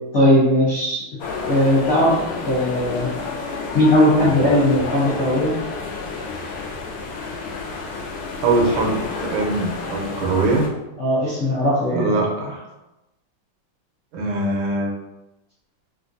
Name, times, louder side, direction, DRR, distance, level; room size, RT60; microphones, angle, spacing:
voice 1, 0.1-1.0 1.4-2.2 2.5-3.1 3.7-5.5 11.0-12.1, left 1 dB, 70° left, -10 dB, 0.7 m, -18 dB
sound 1, 1.2-10.7, left 4 dB, 90° left, 1.6 m, -30 dB
voice 2, 8.4-10.7 11.9-12.6 14.1-14.9, right 2 dB, 75° right, -1 dB, 1.4 m, -22 dB
3.7 x 2.2 x 2.6 m, 0.97 s
omnidirectional pair, 2.4 m